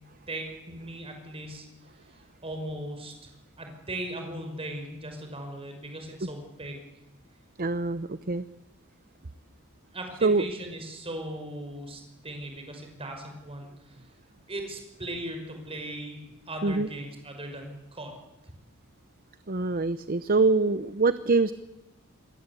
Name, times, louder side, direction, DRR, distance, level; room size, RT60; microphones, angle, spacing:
voice 1, 0.3-1.6 2.1-3.3 3.6-6.8 9.9-13.9 14.5-18.5, right 1 dB, 25° right, 4 dB, 5.9 m, -38 dB
voice 2, 7.6-8.4 10.2-10.5 16.6-16.9 19.5-21.5, right 3 dB, 45° right, 13 dB, 0.8 m, -24 dB
27.5 x 21.0 x 8.5 m, 1.0 s
head